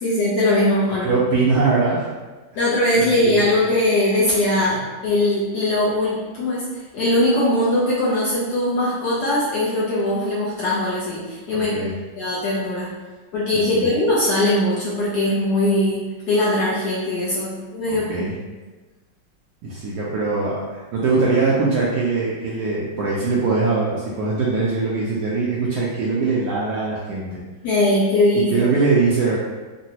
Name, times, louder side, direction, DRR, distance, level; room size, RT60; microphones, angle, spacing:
voice 1, 0.0-1.1 2.5-6.7 6.9-11.7 12.2-12.9 13.3-18.3 27.6-28.5, left 1 dB, 70° left, -8 dB, 1.2 m, -20 dB
voice 2, 1.0-2.1 2.9-3.5 4.6-4.7 11.5-11.9 13.5-13.9 17.9-18.3 19.6-27.4 28.3-29.4, right 4 dB, 70° right, -6 dB, 1.0 m, -22 dB
3.8 x 2.2 x 2.8 m, 1.3 s
omnidirectional pair, 2.0 m